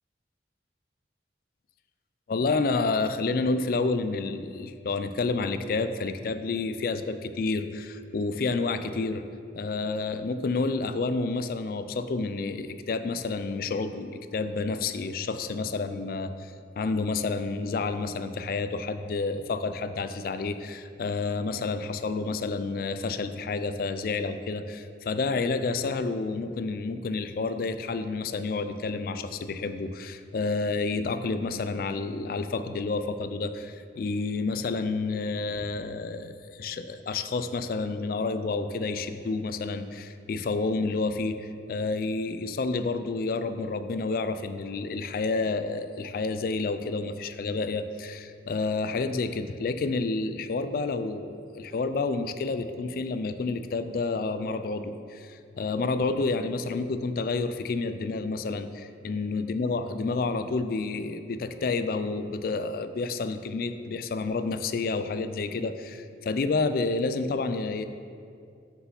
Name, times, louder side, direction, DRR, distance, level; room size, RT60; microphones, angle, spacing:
voice 1, 2.3-9.2 9.5-67.8, left 3 dB, 50° left, 11 dB, 0.3 m, -29 dB
6.6 x 4.8 x 5.5 m, 2.4 s
head